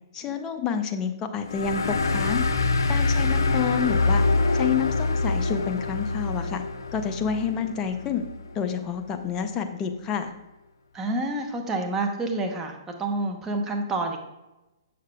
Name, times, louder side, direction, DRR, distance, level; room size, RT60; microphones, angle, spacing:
voice 1, 0.1-2.4 2.9-4.2 4.5-6.6 6.9-8.2 8.5-10.3, left 7 dB, 25° left, 6 dB, 0.6 m, -28 dB
sound 1, 1.5-8.6, left 3 dB, 75° left, 0.5 m, -25 dB
voice 2, 10.9-14.2, right 2 dB, 15° right, 2 dB, 0.9 m, -28 dB
6.6 x 6.5 x 2.3 m, 1.0 s
hypercardioid pair, 125°, 2 cm